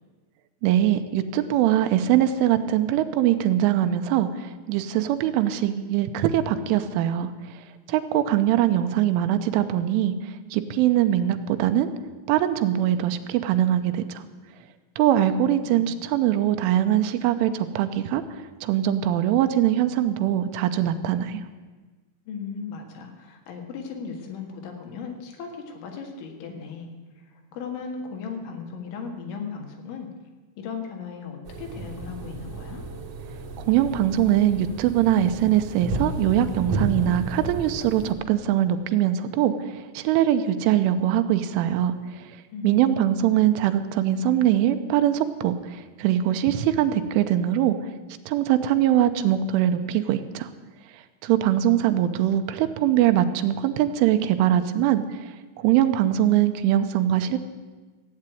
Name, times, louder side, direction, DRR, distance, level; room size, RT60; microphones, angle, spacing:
voice 1, 0.6-7.3 7.9-11.9 12.3-14.2 15.0-18.2 18.6-21.4 33.7-42.2 42.6-47.8 48.3-50.5 51.2-55.0 55.6-57.4, right 11 dB, 85° right, 9 dB, 3.2 m, -22 dB
voice 2, 15.4-16.0 22.3-26.9 27.2-30.1 30.6-32.8 42.5-43.1, left 5 dB, 75° left, 3 dB, 4.1 m, -37 dB
sound 1, 31.4-38.1, right 2 dB, 60° right, 1.7 m, -33 dB
16.0 x 8.7 x 9.1 m, 1.3 s
omnidirectional pair, 5.6 m